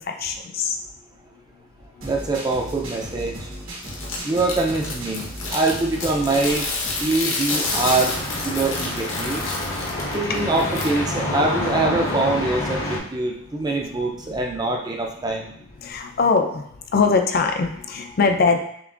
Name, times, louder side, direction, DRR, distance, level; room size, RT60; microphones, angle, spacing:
voice 1, 0.2-0.8 9.9-10.1 13.7-13.8 14.3-14.4 15.8-16.6 16.9-18.6, left 4 dB, 45° left, 5 dB, 0.4 m, -21 dB
voice 2, 2.0-3.5 4.2-5.2 5.5-6.7 7.0-8.2 8.4-9.5 10.1-15.5, right 2 dB, 20° right, 1 dB, 0.4 m, -24 dB
sound 1, 2.0-7.3, equal, 80° right, 1.4 m, -36 dB
sound 2, 3.8-10.9, left 3 dB, 70° left, 1.1 m, -29 dB
sound 3, 7.6-13.0, left 1 dB, 90° left, 1.6 m, -28 dB
6.8 x 2.5 x 2.4 m, 0.71 s
head